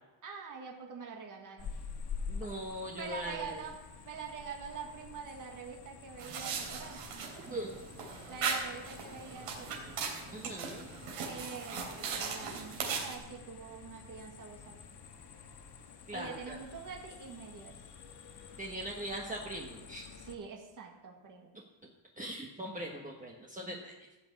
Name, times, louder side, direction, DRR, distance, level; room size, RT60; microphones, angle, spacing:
voice 1, 0.2-1.8 2.4-2.5 3.0-3.7 4.0-7.0 8.3-9.8 11.2-14.9 16.1-17.8 20.2-21.5, right 5 dB, 40° right, 1 dB, 1.9 m, -45 dB
sound 1, 1.6-20.4, left 5 dB, 50° left, 1.6 m, -48 dB
voice 2, 2.3-3.6 7.5-7.7 10.3-10.9 16.1-16.6 18.6-20.1 22.2-23.9, right 1 dB, 15° right, -1 dB, 1.3 m, -40 dB
sound 2, 6.2-13.2, right 5 dB, 80° right, 3.4 m, -38 dB
15.0 x 6.2 x 8.4 m, 1.1 s
cardioid pair, 140°, 50 cm